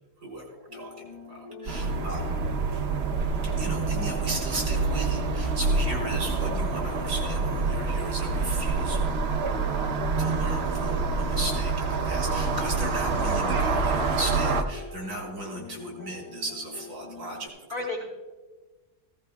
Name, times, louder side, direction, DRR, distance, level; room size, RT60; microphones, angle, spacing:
voice 1, 0.2-2.3 3.6-9.1 10.2-17.5, right 1 dB, 80° right, -1 dB, 3.8 m, -36 dB
sound 1, 0.7-17.5, left 3 dB, 25° left, 2.4 m, -45 dB
sound 2, 1.7-14.6, right 4 dB, 50° right, 0.8 m, -27 dB
voice 2, 2.0-2.3 17.7-18.0, left 2 dB, 60° left, -7 dB, 2.7 m, -34 dB
15.5 x 15.0 x 2.3 m, 1.3 s
omnidirectional pair, 1.7 m